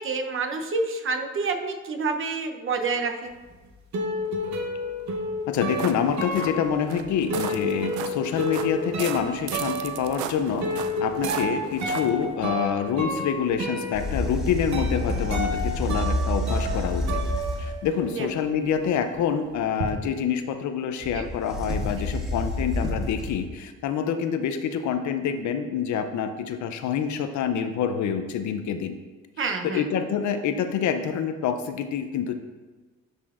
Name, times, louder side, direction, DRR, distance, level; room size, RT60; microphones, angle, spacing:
voice 1, 0.0-3.3 18.1-18.3 21.1-21.2 29.4-29.8, right 4 dB, 45° right, 5 dB, 0.8 m, -28 dB
sound 1, 3.4-18.2 18.4-19.9, equal, 65° right, 1.0 m, -32 dB
voice 2, 5.5-10.7 11.0-17.2 17.6-29.0 29.6-32.4, left 7 dB, 70° left, 8 dB, 0.6 m, -27 dB
sound 2, 5.5-12.3, right 8 dB, 80° right, 0.5 m, -37 dB
sound 3, 13.9-17.8 21.0-23.4, left 1 dB, ahead, 1.5 m, -28 dB
11.0 x 4.2 x 2.5 m, 1.3 s
cardioid pair, 90°, 30 cm